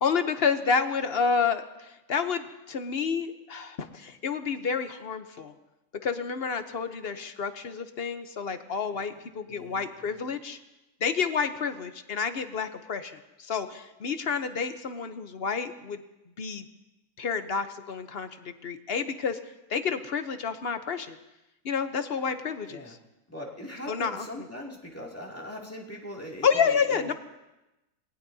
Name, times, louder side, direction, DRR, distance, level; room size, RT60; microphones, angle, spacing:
voice 1, 0.0-5.5 6.0-10.6 11.0-16.0 16.4-16.6 17.2-19.4 19.7-21.2 21.6-23.0 23.9-24.2 26.4-27.1, left 6 dB, 50° left, 9 dB, 0.9 m, -29 dB
voice 2, 9.5-10.3 22.7-22.9 23.3-27.1, equal, 10° left, -3 dB, 2.4 m, -41 dB
27.0 x 19.5 x 2.7 m, 0.99 s
omnidirectional pair, 1.5 m